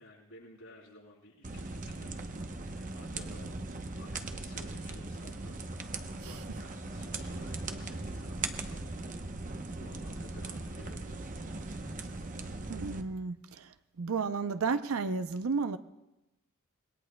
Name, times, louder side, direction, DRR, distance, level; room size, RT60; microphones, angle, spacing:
voice 1, 0.0-3.5 3.9-11.6, left 1 dB, 90° left, 6.0 m, -55 dB
sound 1, 1.4-13.0, right 3 dB, 35° right, 0.8 m, -39 dB
voice 2, 12.7-15.8, right 4 dB, 75° right, 0.5 m, -33 dB
26.0 x 21.0 x 2.2 m
head